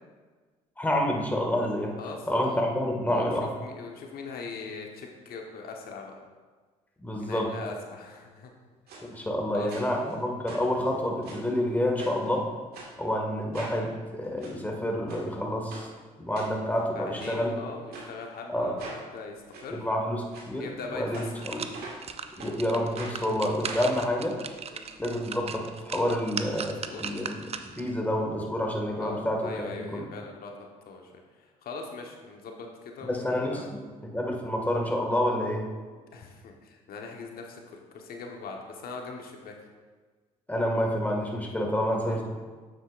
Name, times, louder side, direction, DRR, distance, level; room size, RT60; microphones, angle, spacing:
voice 1, 0.8-2.0 2.3-3.5 7.0-7.5 9.0-12.5 13.0-15.9 16.2-17.5 18.5-18.7 19.7-21.6 22.4-24.4 25.0-30.0 33.0-35.7 40.5-42.2, left 1 dB, 10° left, 0 dB, 2.0 m, -28 dB
voice 2, 2.0-2.7 3.1-6.1 7.2-8.5 9.5-9.7 16.9-19.8 20.6-21.0 21.3-21.6 23.8-23.9 24.7-24.8 26.9-27.0 29.0-30.5 30.9-31.0 31.6-33.7 36.1-39.5 42.0-42.2, left 4 dB, 55° left, 1 dB, 1.2 m, -41 dB
sound 1, 8.9-9.0 9.7-10.1 10.5-11.5 12.0-12.3 12.7-12.9 13.5-13.8 14.2-14.5 15.1-15.3 15.7-15.9 16.3-16.8 17.2-17.4 17.9-18.1 18.8-19.0 19.5-19.7 20.3-20.5 21.1-22.1 22.4-22.5 23.0-23.2 23.6-25.2 25.5-25.6 25.8-25.9, right 3 dB, 60° right, 2.0 m, -43 dB
keys jingling, 20.5-20.6 21.1-27.9 28.4-28.5, right 6 dB, 35° right, 0.6 m, -39 dB
8.6 x 7.8 x 2.6 m, 1.4 s
hypercardioid pair, 55°, 18 cm